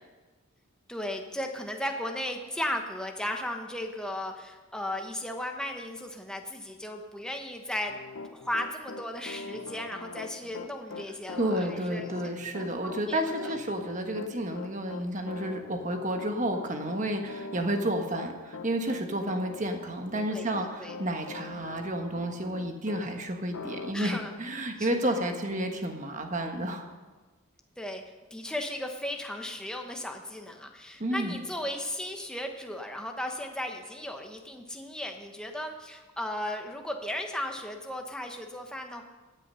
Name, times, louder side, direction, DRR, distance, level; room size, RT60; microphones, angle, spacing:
voice 1, 0.9-8.0 8.3-12.3 12.6-13.5 20.3-21.0 23.9-24.3 24.8-25.1 27.8-28.0 28.3-39.0, left 1 dB, 5° left, 3 dB, 1.0 m, -36 dB
Piano, 7.9-23.1 23.5-23.9, left 4 dB, 80° left, 0.8 m, -42 dB
voice 2, 11.4-26.8 31.0-31.4, right 1 dB, 35° right, 4 dB, 1.4 m, -31 dB
16.5 x 9.5 x 5.6 m, 1.3 s
head